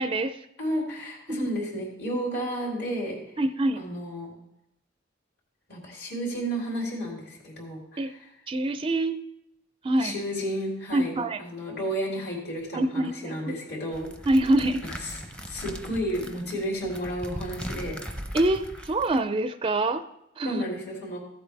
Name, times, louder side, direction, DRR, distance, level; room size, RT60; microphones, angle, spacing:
voice 1, 0.0-0.4 1.3-1.5 3.4-3.8 8.0-8.1 8.5-9.2 9.8-10.1 10.9-11.4 12.7-13.6 14.3-14.8 18.3-20.0 20.4-20.6, right 1 dB, 25° right, 10 dB, 0.4 m, -25 dB
voice 2, 0.6-3.2 3.8-4.4 5.7-8.1 10.0-14.1 15.4-18.0 20.4-21.2, equal, 55° left, -4 dB, 3.7 m, -32 dB
sound 1, 13.9-19.2, equal, 5° left, 0.7 m, -39 dB
15.0 x 8.1 x 3.4 m, 0.84 s
head